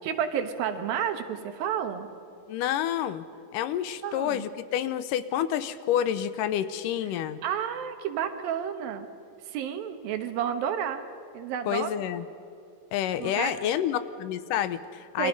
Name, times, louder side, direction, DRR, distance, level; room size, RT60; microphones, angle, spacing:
voice 1, 0.0-2.1 4.0-4.5 7.4-9.1 9.5-11.0 11.3-11.9 13.2-13.5 15.2-15.3, right 9 dB, 90° right, 7 dB, 3.1 m, -30 dB
voice 2, 2.5-3.2 3.5-7.4 11.7-12.2 12.9-15.3, left 10 dB, 75° left, 13 dB, 2.3 m, -28 dB
28.5 x 23.5 x 5.3 m, 2.5 s
omnidirectional pair, 4.0 m